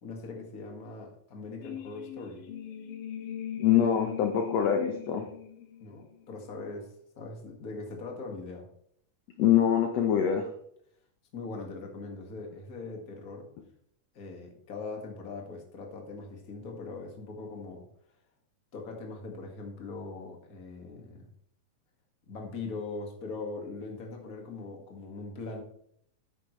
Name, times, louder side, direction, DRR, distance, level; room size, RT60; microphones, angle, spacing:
voice 1, 0.0-2.4 5.8-8.7 11.3-13.5 14.1-17.8 18.7-21.3 22.3-25.6, left 3 dB, 30° left, 1 dB, 1.9 m, -41 dB
sound 1, 1.6-6.4, left 9 dB, 80° left, 2.8 m, -40 dB
voice 2, 3.6-5.2 9.4-10.5, left 9 dB, 65° left, 4 dB, 1.8 m, -24 dB
11.5 x 9.3 x 3.2 m, 0.68 s
omnidirectional pair, 3.8 m